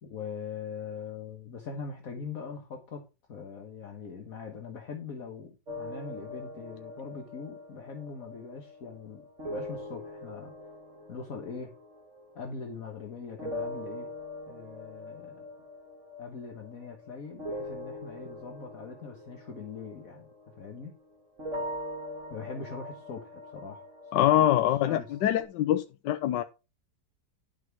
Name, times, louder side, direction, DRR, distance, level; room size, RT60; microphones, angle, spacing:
voice 1, 0.0-3.0 3.3-10.5 11.1-11.7 12.3-14.1 14.5-15.5 16.2-21.0 22.3-23.8 24.2-24.5 24.8-25.1, left 5 dB, 55° left, 1.7 m, -42 dB
sound 1, 5.7-13.0 13.4-21.0 21.4-25.4, left 1 dB, 45° right, 2.5 m, -42 dB
voice 2, 24.1-26.4, left 12 dB, 90° left, 1.3 m, -24 dB
12.0 x 6.0 x 4.6 m
omnidirectional pair, 1.8 m